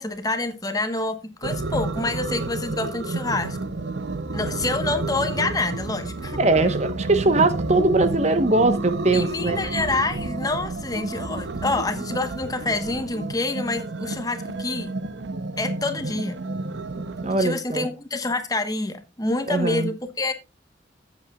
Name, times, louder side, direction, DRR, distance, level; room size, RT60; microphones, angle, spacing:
voice 1, 0.0-3.6 4.3-6.4 9.1-14.9 15.6-16.4 16.9-20.3, left 2 dB, 20° left, 1.2 m, -27 dB
sound 1, 1.4-17.4, right 2 dB, 75° right, 0.8 m, -30 dB
voice 2, 6.4-9.7 17.2-17.9 19.5-19.9, right 2 dB, 40° right, 1.1 m, -21 dB
14.5 x 8.4 x 2.4 m
head